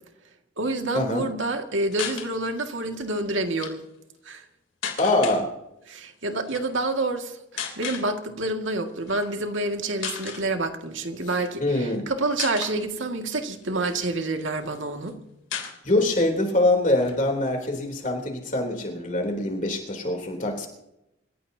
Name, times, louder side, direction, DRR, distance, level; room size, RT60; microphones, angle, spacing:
voice 1, 0.6-3.8 4.3-4.4 5.9-15.1, right 2 dB, 75° right, 4 dB, 2.1 m, -28 dB
sound 1, 1.9-2.3 3.4-3.7 4.8-5.4 6.4-6.6 7.6-8.1 9.1-9.3 9.7-9.8 10.0-10.4 11.3-12.0 12.4-12.8 13.4-14.4 14.7-14.8 15.0-15.1 15.5-16.3 16.6-16.7 17.0-18.1, left 7 dB, 85° left, 3.2 m, -34 dB
voice 2, 5.0-5.5 11.6-12.0 15.8-20.7, left 1 dB, 40° left, 3 dB, 3.4 m, -24 dB
27.5 x 15.5 x 2.8 m, 0.85 s
head